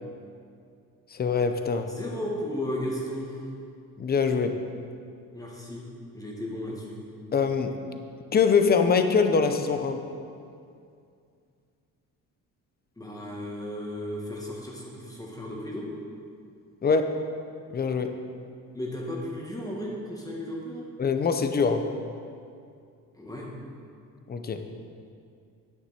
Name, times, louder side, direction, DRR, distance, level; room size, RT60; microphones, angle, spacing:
voice 1, 1.1-1.9 4.0-4.6 7.3-7.8 8.3-10.0 16.8-17.2 17.7-18.2 21.0-21.9 24.3-24.6, left 5 dB, 30° left, 7 dB, 0.6 m, -23 dB
voice 2, 1.9-3.4 5.3-5.9 6.1-7.0 13.0-15.9 18.7-20.9 23.1-23.5, left 1 dB, 10° left, -3 dB, 1.7 m, -34 dB
9.7 x 9.6 x 4.4 m, 2.4 s
cardioid pair, 140°, 34 cm